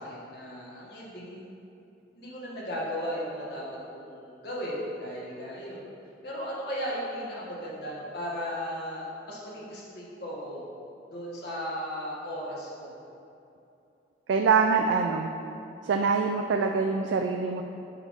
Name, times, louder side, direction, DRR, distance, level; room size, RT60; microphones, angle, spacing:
voice 1, 0.0-1.5 2.1-3.6 3.9-5.8 6.2-10.6 11.1-12.9, equal, 60° left, -5 dB, 1.5 m, -36 dB
voice 2, 14.3-15.3 15.8-17.6, right 5 dB, 75° right, 4 dB, 0.3 m, -24 dB
8.2 x 3.5 x 5.2 m, 2.8 s
head